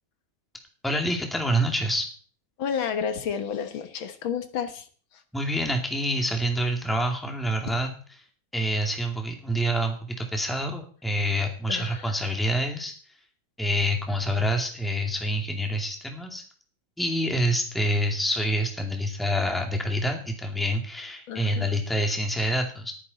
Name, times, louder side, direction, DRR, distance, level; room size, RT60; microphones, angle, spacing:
voice 1, 0.8-2.1 5.3-7.9 8.5-12.9 13.6-16.4 17.0-22.9, equal, ahead, 3 dB, 2.2 m, -27 dB
voice 2, 2.6-4.9 5.1-5.2 11.7-12.0 21.3-21.7, left 7 dB, 80° left, 8 dB, 2.0 m, -31 dB
20.5 x 9.8 x 4.1 m, 0.43 s
omnidirectional pair, 2.2 m